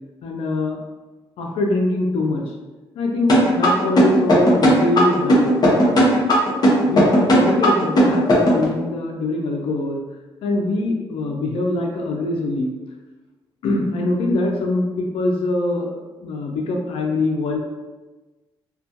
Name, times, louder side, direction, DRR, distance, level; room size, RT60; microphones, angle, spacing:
voice 1, 0.2-0.8 1.4-2.4 3.0-6.0 6.9-10.0 10.4-12.7 13.6-17.6, left 2 dB, 85° left, 1 dB, 0.4 m, -23 dB
sound 1, 3.3-8.6, equal, 45° left, 0.7 m, -15 dB
2.3 x 2.2 x 2.7 m, 1.2 s
cardioid pair, 100°, 10 cm